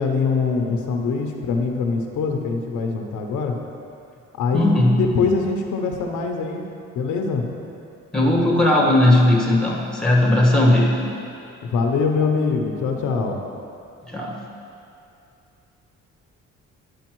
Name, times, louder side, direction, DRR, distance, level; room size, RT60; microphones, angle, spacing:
voice 1, 0.0-3.5 4.4-6.7 7.0-7.4 11.6-13.4, left 4 dB, 80° left, 3 dB, 0.7 m, -23 dB
voice 2, 4.5-5.0 8.1-11.0 14.0-14.4, left 1 dB, ahead, -3 dB, 1.4 m, -17 dB
10.5 x 5.1 x 3.0 m, 2.6 s
cardioid pair, 90°, 30 cm